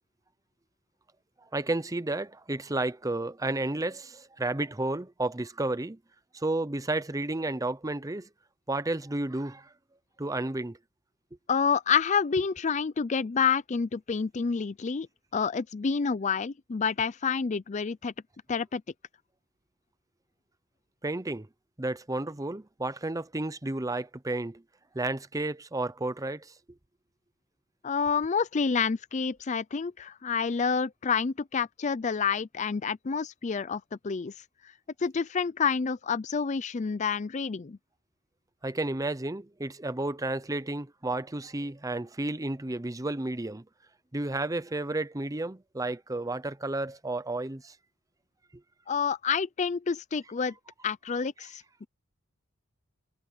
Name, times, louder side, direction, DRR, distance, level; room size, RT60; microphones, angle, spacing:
voice 1, 1.5-6.0 6.3-8.3 8.7-9.7 10.2-10.8 21.0-21.5 21.8-24.6 24.9-26.5 38.6-43.6 44.1-47.7, right 2 dB, 15° right, 0.7 m, -32 dB
voice 2, 11.5-15.1 15.3-18.1 18.5-18.8 27.8-34.3 35.0-37.8 48.9-50.5 50.8-51.9, left 6 dB, 35° left, 0.4 m, -28 dB
head